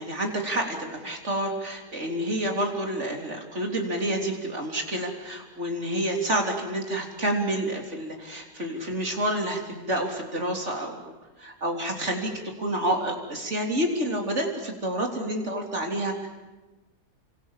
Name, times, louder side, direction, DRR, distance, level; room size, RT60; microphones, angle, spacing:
voice 1, 0.0-11.1 11.4-12.3 12.6-16.3, right 1 dB, 45° right, 2 dB, 3.9 m, -29 dB
30.0 x 26.0 x 7.5 m, 1.1 s
omnidirectional pair, 1.7 m